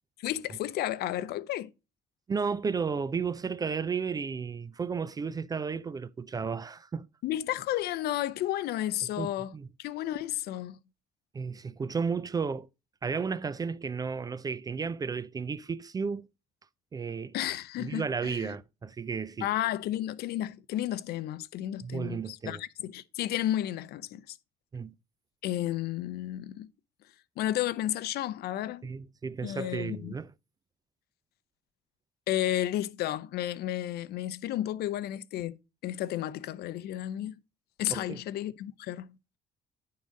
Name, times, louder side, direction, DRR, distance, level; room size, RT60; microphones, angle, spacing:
voice 1, 0.2-1.7 7.2-9.5 9.8-10.8 17.3-18.6 19.4-24.4 25.4-26.7 27.4-28.8 29.4-30.1 32.3-35.6 35.8-37.3 37.8-39.1, left 13 dB, 70° left, 0.6 m, -32 dB
voice 2, 2.3-7.1 9.2-9.7 11.3-12.7 13.0-16.3 16.9-17.4 17.8-19.5 21.8-22.6 24.7-24.9 28.8-30.3 37.9-38.2, right 5 dB, 20° right, 0.3 m, -33 dB
10.5 x 3.8 x 5.1 m
cardioid pair, 110°, 17 cm